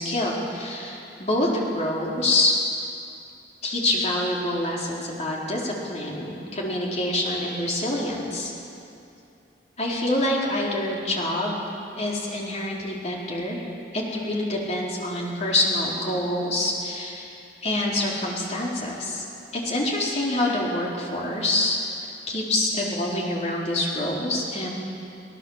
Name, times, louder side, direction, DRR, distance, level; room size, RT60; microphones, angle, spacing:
voice 1, 0.0-2.6 3.6-8.5 9.8-11.6 12.0-13.6 13.9-17.3 17.6-19.2 19.5-21.8 22.3-24.7, left 1 dB, 40° left, -3 dB, 4.3 m, -26 dB
24.5 x 18.0 x 7.4 m, 2.6 s
head